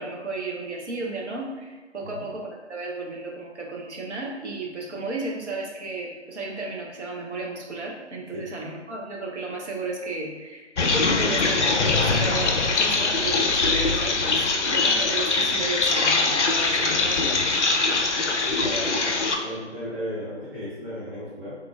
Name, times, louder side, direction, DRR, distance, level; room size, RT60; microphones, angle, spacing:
voice 1, 0.0-17.4, right 2 dB, 70° right, -1 dB, 0.9 m, -33 dB
sound 1, 10.8-19.4, left 3 dB, 75° left, 0.6 m, -22 dB
voice 2, 18.4-21.6, equal, 15° right, -20 dB, 1.1 m, -34 dB
3.7 x 3.1 x 2.3 m, 1.3 s
figure-of-eight pair, 155°, 36 cm